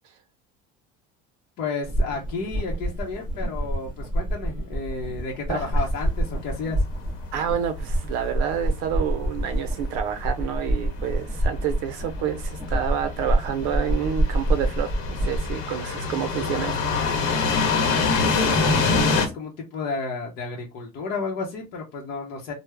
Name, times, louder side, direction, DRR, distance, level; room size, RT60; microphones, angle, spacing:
voice 1, 1.6-6.8 18.0-22.5, left 4 dB, 50° left, 0.7 m, -32 dB
sound 1, 1.8-15.5, right 1 dB, 10° right, 1.1 m, -27 dB
sound 2, 5.5-19.3, left 4 dB, 85° left, 0.9 m, -27 dB
voice 2, 7.3-16.9, right 8 dB, 80° right, 0.5 m, -28 dB
3.4 x 2.0 x 3.2 m
cardioid pair, 165°, 20 cm